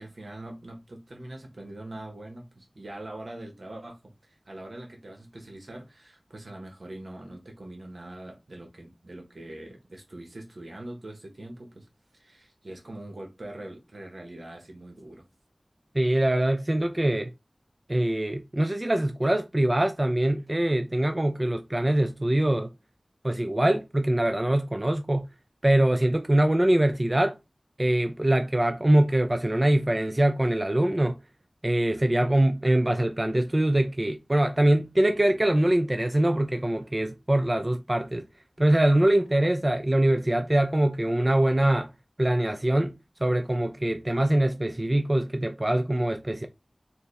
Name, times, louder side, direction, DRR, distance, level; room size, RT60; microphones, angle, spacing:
voice 1, 0.0-11.9 12.1-15.2, right 1 dB, 80° right, 1.3 m, -43 dB
voice 2, 15.9-17.3 17.9-22.7 23.2-25.3 25.6-27.4 27.8-31.2 31.6-38.2 38.6-41.9 42.2-42.9 43.2-46.5, right 1 dB, 30° right, 0.4 m, -23 dB
4.3 x 2.6 x 3.3 m
wide cardioid pair, 45°, 0 cm